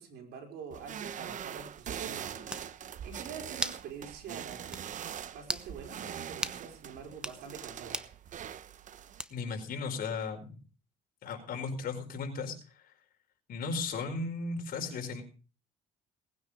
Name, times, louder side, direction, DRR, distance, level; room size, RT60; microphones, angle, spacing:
voice 1, 0.0-4.8 5.3-8.0, right 6 dB, 70° right, 3 dB, 5.1 m, -46 dB
sound 1, 0.7-9.2, right 9 dB, 50° right, 0.9 m, -42 dB
sound 2, 2.5-2.7 3.6-3.9 4.2-4.3 4.7-4.9 5.4-5.7 6.4-6.6 7.1-7.4 7.9-8.1 9.2-9.5, right 1 dB, 5° right, 0.9 m, -36 dB
voice 2, 9.3-10.6 11.2-12.9 13.5-15.2, left 4 dB, 60° left, 3 dB, 4.9 m, -36 dB
19.0 x 9.4 x 5.1 m, 0.37 s
cardioid pair, 110°, 17 cm